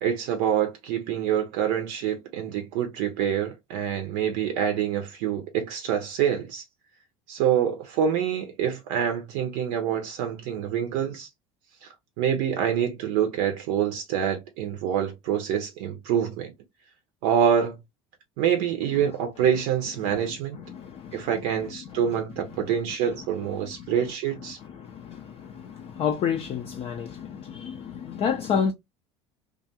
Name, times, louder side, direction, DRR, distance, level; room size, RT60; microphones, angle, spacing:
voice 1, 0.0-6.6 7.3-11.3 11.8-16.5 17.2-17.8 18.4-20.6 21.1-24.6, right 9 dB, 60° right, 0.6 m, -26 dB
voice 2, 20.1-21.3 21.9-22.2 22.5-22.6 23.5-24.0 24.6-28.7, left 7 dB, 40° left, 0.4 m, -31 dB
2.4 x 2.2 x 2.7 m
hypercardioid pair, 70°, 16 cm